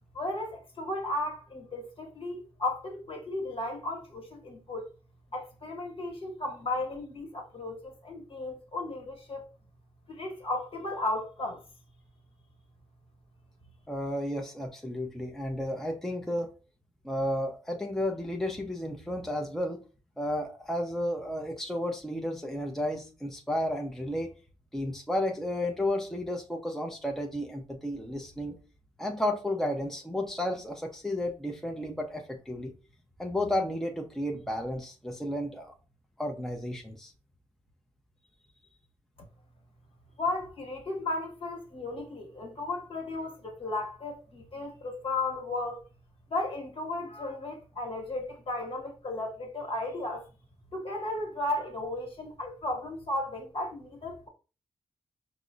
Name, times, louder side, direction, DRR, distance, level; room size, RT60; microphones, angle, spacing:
voice 1, 0.1-4.9 5.3-9.5 10.1-11.6 39.2-39.3 40.2-45.8 46.3-50.3 50.7-54.3, left 2 dB, 55° left, 1.2 m, -35 dB
voice 2, 13.9-16.5 17.0-19.8 20.2-24.3 24.7-28.6 29.0-32.7 33.2-35.7 36.2-37.1, left 1 dB, 5° left, 0.5 m, -32 dB
4.7 x 2.0 x 2.5 m
cardioid pair, 70°, 11 cm